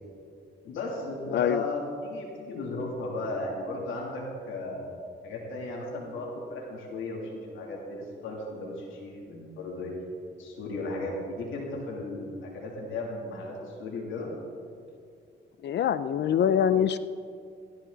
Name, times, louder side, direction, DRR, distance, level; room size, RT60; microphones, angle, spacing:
voice 1, 0.6-9.9 10.4-14.3, left 2 dB, 80° left, -2 dB, 3.1 m, -35 dB
voice 2, 1.3-1.6 15.6-17.0, left 9 dB, 60° left, 14 dB, 0.5 m, -24 dB
16.0 x 13.5 x 4.0 m, 2.4 s
cardioid pair, 90°, 20 cm